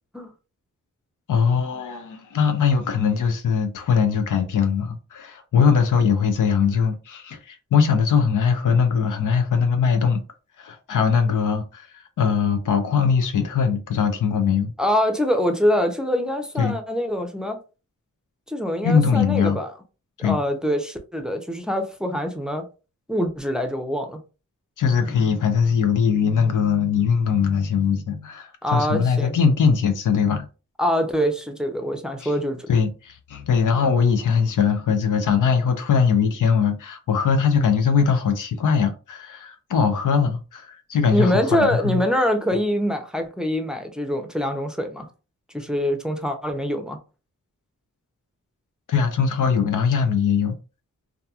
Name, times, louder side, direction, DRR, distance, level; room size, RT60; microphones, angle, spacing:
voice 1, 1.3-10.2 10.6-14.7 16.6-16.8 18.8-19.6 20.2-20.4 24.8-30.5 32.2-32.3 32.7-42.0 48.9-50.6, left 6 dB, 85° left, 0.6 m, -21 dB
voice 2, 14.8-17.6 18.5-19.7 20.2-22.7 23.1-24.2 28.6-29.3 30.8-32.7 41.1-45.1 45.5-47.0, equal, ahead, 0.5 m, -24 dB
2.7 x 2.3 x 2.3 m
cardioid pair, 50°, 30 cm